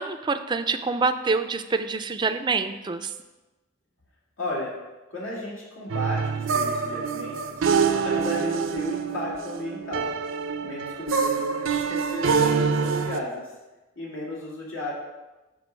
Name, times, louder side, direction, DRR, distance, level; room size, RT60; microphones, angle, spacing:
voice 1, 0.0-3.1, right 4 dB, 25° right, 9 dB, 0.4 m, -26 dB
voice 2, 4.4-4.7 5.1-7.6 8.0-10.1 10.6-13.5 14.0-14.9, left 1 dB, 85° left, -5 dB, 2.1 m, -34 dB
sound 1, 5.9-13.2, right 5 dB, 85° right, 0.6 m, -25 dB
6.2 x 4.7 x 6.3 m, 1.1 s
head